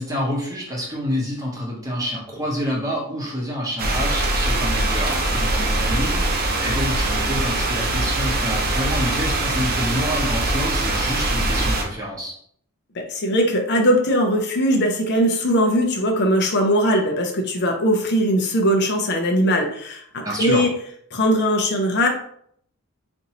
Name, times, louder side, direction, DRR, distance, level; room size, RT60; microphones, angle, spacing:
voice 1, 0.0-12.3 20.2-20.7, equal, 15° right, -3 dB, 0.8 m, -28 dB
sound 1, 3.8-11.8, right 2 dB, 45° right, 0.6 m, -22 dB
voice 2, 13.0-20.7 21.1-22.1, equal, 50° left, 2 dB, 0.5 m, -20 dB
4.3 x 2.6 x 2.8 m, 0.65 s
head